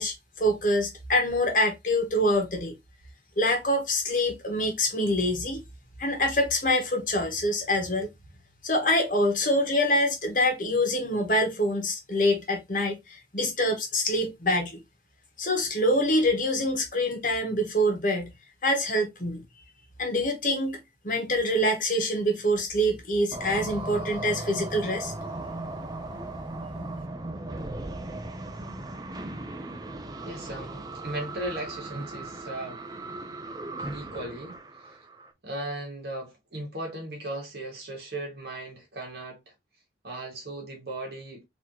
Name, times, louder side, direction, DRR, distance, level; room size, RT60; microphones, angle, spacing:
voice 1, 0.0-2.7 3.4-5.6 6.0-8.1 8.6-14.8 15.4-18.3 18.6-19.4 20.0-25.1, left 1 dB, 50° left, 1.3 m, -25 dB
sound 1, 23.3-35.3, right 2 dB, 20° right, 0.5 m, -37 dB
voice 2, 30.2-32.8 33.8-35.0 35.4-39.4 40.0-41.4, right 1 dB, 65° right, 2.0 m, -37 dB
4.1 x 2.9 x 2.9 m
head